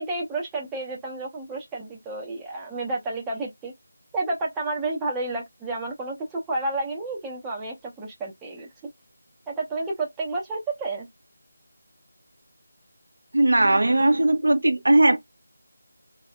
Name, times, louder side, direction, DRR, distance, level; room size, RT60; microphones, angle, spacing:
voice 1, 0.0-3.7 4.1-8.7 9.5-11.1, right 2 dB, 10° right, 0.9 m, -30 dB
voice 2, 13.3-15.2, right 2 dB, 80° right, 0.9 m, -18 dB
4.1 x 3.4 x 2.3 m
figure-of-eight pair, 170°, 0 cm